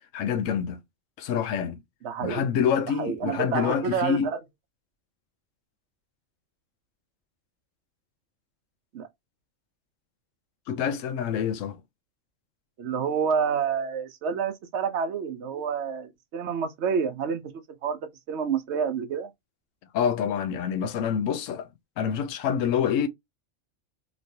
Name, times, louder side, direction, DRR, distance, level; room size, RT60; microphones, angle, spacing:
voice 1, 0.1-0.8 1.2-1.8 2.2-4.3 10.7-11.8 19.9-21.7 22.0-23.1, left 8 dB, 80° left, 0.9 m, -26 dB
voice 2, 2.0-2.4 3.0-4.4 8.9-9.1 12.8-17.4 17.8-19.3, right 6 dB, 65° right, 0.9 m, -28 dB
3.0 x 3.0 x 2.7 m
omnidirectional pair, 1.3 m